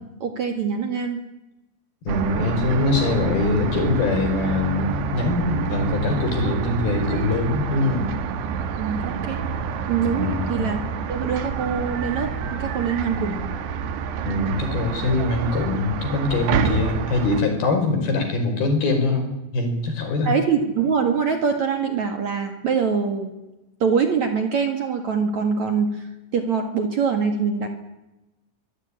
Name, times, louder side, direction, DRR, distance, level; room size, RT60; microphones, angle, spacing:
voice 1, 0.2-1.2 8.8-9.4 9.9-10.8 11.1-13.5 20.3-23.3 23.8-26.1 26.3-27.7, right 6 dB, 50° right, 6 dB, 2.7 m, -24 dB
voice 2, 2.0-8.1 10.1-10.6 14.3-20.3, left 3 dB, 60° left, 5 dB, 6.8 m, -23 dB
sound 1, 2.1-17.4, right 6 dB, 75° right, 3.7 m, -28 dB
25.0 x 17.0 x 10.0 m, 0.99 s
omnidirectional pair, 5.0 m